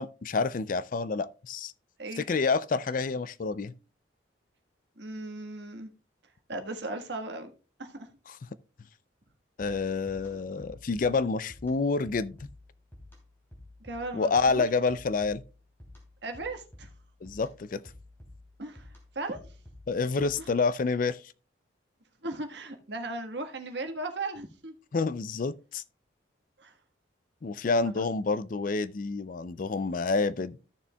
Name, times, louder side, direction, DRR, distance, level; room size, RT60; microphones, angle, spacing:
voice 1, 0.0-1.7 2.2-3.7 8.3-8.4 9.6-12.5 14.1-15.4 17.2-17.8 19.9-21.2 24.9-25.8 27.4-30.7, left 4 dB, 45° left, 0.4 m, -28 dB
voice 2, 5.0-5.9 6.5-7.5 7.8-8.1 9.7-9.8 13.8-14.6 16.2-16.9 18.6-18.9 19.1-19.4 22.2-24.7 26.6-26.7 28.0-28.1, right 2 dB, 65° right, 1.5 m, -37 dB
sound 1, 9.6-20.7, left 1 dB, 10° left, 3.0 m, -52 dB
14.5 x 6.8 x 2.3 m
head